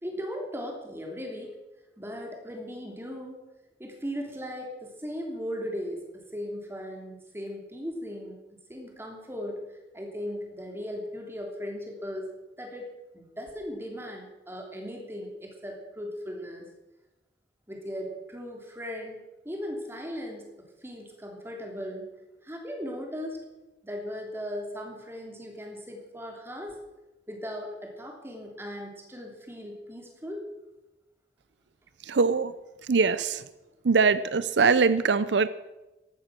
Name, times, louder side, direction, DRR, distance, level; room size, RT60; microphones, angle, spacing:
voice 1, 0.0-1.6 2.0-3.4 3.8-8.4 8.7-12.3 12.6-12.9 13.1-16.7 17.7-20.5 20.8-22.1 22.4-23.4 23.8-26.8 27.3-30.4, equal, 15° right, 1 dB, 3.0 m, -37 dB
voice 2, 32.1-32.5 32.9-33.4 33.8-35.5, right 4 dB, 85° right, 15 dB, 0.6 m, -22 dB
15.0 x 11.5 x 6.1 m, 1.0 s
head